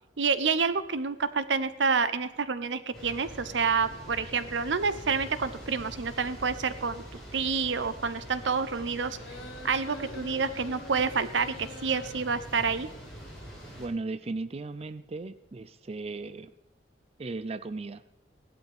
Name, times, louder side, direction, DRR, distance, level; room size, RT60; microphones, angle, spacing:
voice 1, 0.2-7.0 7.3-9.2 9.6-12.9, right 5 dB, 90° right, 13 dB, 0.8 m, -28 dB
sound 1, 2.9-13.9, equal, 5° left, 5.7 m, -45 dB
sound 2, 9.1-12.2, left 2 dB, 70° left, 1.8 m, -45 dB
voice 2, 13.8-16.5 17.2-18.0, right 3 dB, 35° right, 12 dB, 0.4 m, -36 dB
16.0 x 11.5 x 3.5 m, 0.89 s
head